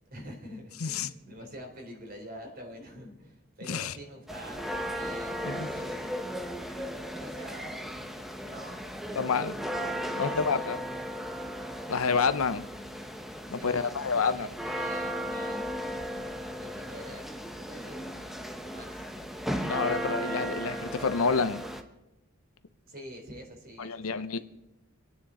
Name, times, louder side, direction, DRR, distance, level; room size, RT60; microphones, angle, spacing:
voice 1, 0.1-6.2 6.4-7.9 8.4-9.0 9.6-11.3 13.5-15.9 16.5-18.1 18.6-19.1 22.9-24.4, equal, 45° right, 3.7 m, -46 dB
voice 2, 0.8-1.1 3.7-3.9 5.4-5.7 9.2-9.5 10.2-10.8 11.9-12.7 13.5-14.5 16.1-16.2 19.7-21.6 23.8-24.4, left 5 dB, 85° left, 0.8 m, -28 dB
sound 1, 4.3-21.8, equal, ahead, 0.9 m, -36 dB
27.0 x 9.5 x 4.3 m
head